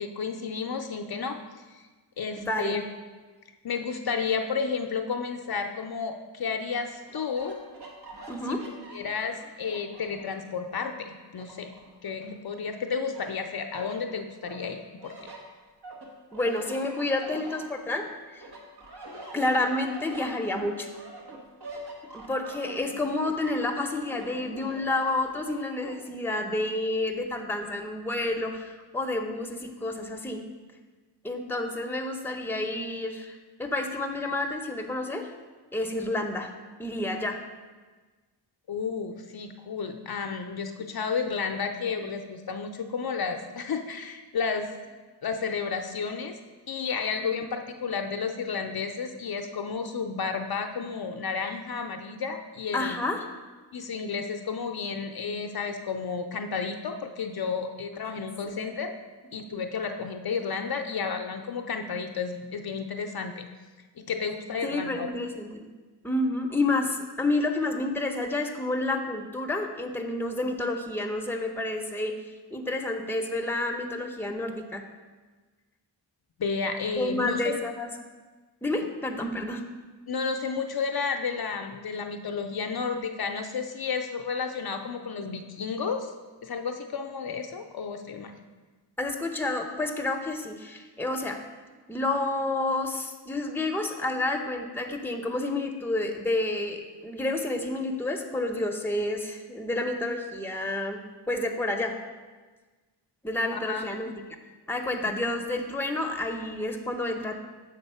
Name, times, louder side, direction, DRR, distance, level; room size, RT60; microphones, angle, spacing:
voice 1, 0.0-1.4 1.7-1.9 2.2-2.8 3.6-7.6 8.4-8.6 8.9-11.7 12.0-15.1 38.7-44.7 45.2-46.4 46.7-53.0 53.7-58.9 59.3-63.5 64.0-65.1 76.4-77.6 80.1-86.1 86.4-88.3 103.5-103.9 105.0-105.1, left 5 dB, 55° left, 5 dB, 0.5 m, -32 dB
voice 2, 2.4-2.8 8.3-8.6 16.3-18.0 18.3-18.4 19.3-20.9 22.1-30.4 31.2-35.3 35.7-36.5 36.8-37.4 47.2-47.3 52.7-53.2 58.5-58.6 64.6-65.7 66.0-72.1 72.5-74.8 77.0-77.9 78.6-79.6 89.0-91.4 91.9-101.0 101.3-101.9 103.2-104.2 104.7-107.4, left 2 dB, 5° left, 3 dB, 0.7 m, -29 dB
sound 1, 7.1-10.5 10.9-12.7 13.1-14.0 14.4-18.1 18.4-26.0, right 2 dB, 60° right, 1.4 m, -44 dB
7.1 x 3.8 x 5.5 m, 1.3 s
wide cardioid pair, 70°, 44 cm